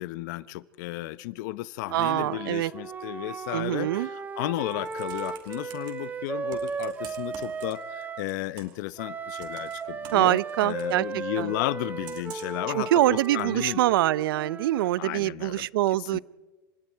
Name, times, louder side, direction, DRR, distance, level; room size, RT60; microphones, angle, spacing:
voice 1, 0.0-13.8 15.0-15.7 16.0-16.2, left 17 dB, 55° left, 0.8 m, -34 dB
Wind instrument woodwind instrument, 1.9-8.3 9.0-15.0, right 5 dB, 15° right, 1.7 m, -36 dB
voice 2, 1.9-2.7 3.5-4.1 10.1-11.0 11.4-11.5 12.7-16.2, right 15 dB, 75° right, 0.6 m, -24 dB
Computer keyboard, 4.5-5.9 6.5-8.0 8.3-8.9 9.4-10.9 12.0-12.6 13.4-13.5, right 10 dB, 40° right, 4.3 m, -47 dB
29.0 x 26.5 x 4.6 m
supercardioid pair, 145°, 12 cm